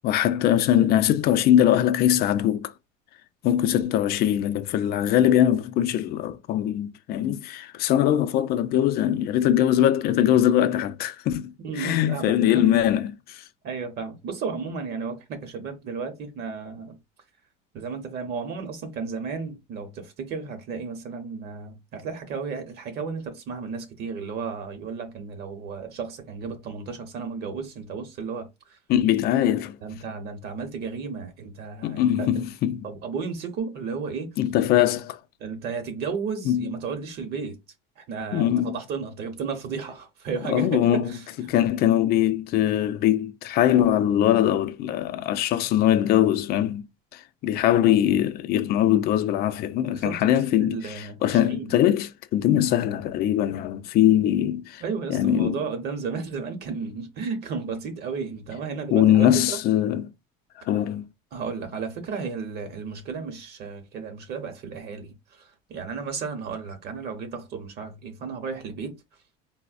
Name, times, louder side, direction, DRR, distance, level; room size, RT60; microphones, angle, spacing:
voice 1, 0.0-2.7 3.4-13.4 28.9-29.8 31.8-32.9 34.4-35.2 36.5-36.7 38.3-38.8 40.5-41.0 41.5-46.8 47.1-54.8 55.1-55.6 58.9-60.0 60.6-61.0, left 11 dB, 50° left, 0.4 m, -22 dB
voice 2, 11.6-12.7 13.6-16.9 17.7-28.8 29.8-32.4 32.8-34.4 35.4-37.6 38.0-41.6 49.9-51.7 54.8-59.6 61.3-69.0, right 5 dB, 55° right, 0.8 m, -33 dB
3.9 x 2.1 x 2.4 m
supercardioid pair, 115°, 20 cm